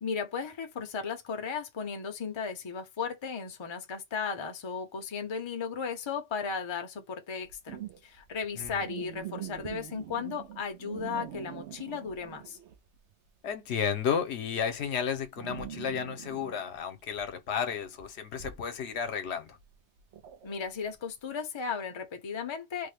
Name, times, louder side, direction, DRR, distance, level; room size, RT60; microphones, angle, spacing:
voice 1, 0.0-12.6 20.4-22.9, left 6 dB, 35° left, 0.5 m, -35 dB
sound 1, 7.4-13.0 13.3-21.1, right 11 dB, 85° right, 0.9 m, -44 dB
voice 2, 8.6-8.9 13.4-19.6, left 7 dB, 75° left, 0.9 m, -32 dB
3.4 x 2.1 x 3.3 m
omnidirectional pair, 1.1 m